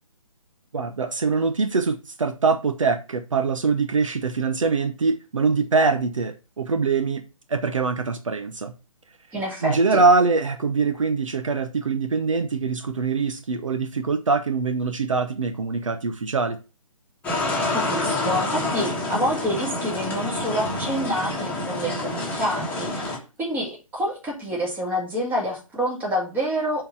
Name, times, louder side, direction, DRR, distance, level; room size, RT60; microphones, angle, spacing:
voice 1, 0.7-7.2 7.5-8.7 9.6-16.6, right 4 dB, 70° right, 0.9 m, -23 dB
voice 2, 9.3-10.0 17.7-26.8, equal, 10° right, 2.0 m, -27 dB
sound 1, 17.2-23.2, left 2 dB, 10° left, 1.7 m, -27 dB
6.8 x 4.0 x 6.4 m
figure-of-eight pair, 135°, 17 cm